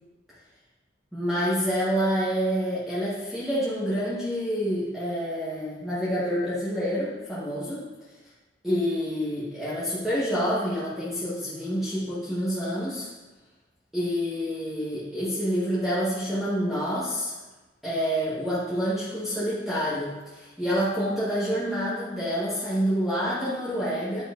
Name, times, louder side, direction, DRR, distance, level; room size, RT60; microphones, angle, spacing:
voice 1, 1.1-7.8 8.6-13.1 13.9-17.3 17.8-24.2, equal, ahead, -11 dB, 1.3 m, -27 dB
9.1 x 5.8 x 2.6 m, 1.2 s
head